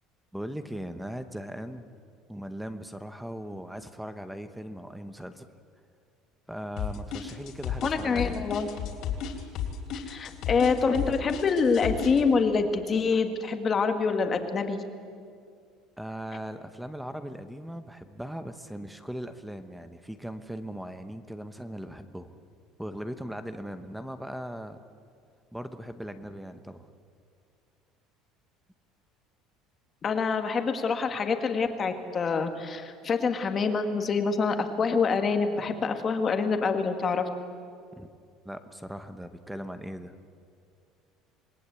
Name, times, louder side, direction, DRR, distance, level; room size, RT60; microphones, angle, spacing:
voice 1, 0.3-1.9 2.3-5.5 6.5-8.5 16.0-22.3 22.8-24.8 25.5-26.9 38.0-38.1 38.4-40.1, equal, ahead, 10 dB, 0.9 m, -39 dB
sound 1, 6.8-12.2, left 9 dB, 50° left, 3.1 m, -32 dB
voice 2, 7.8-8.7 10.1-14.8 30.0-37.3, left 5 dB, 25° left, 7 dB, 1.7 m, -26 dB
27.5 x 20.0 x 8.3 m, 2.3 s
cardioid pair, 165°, 0 cm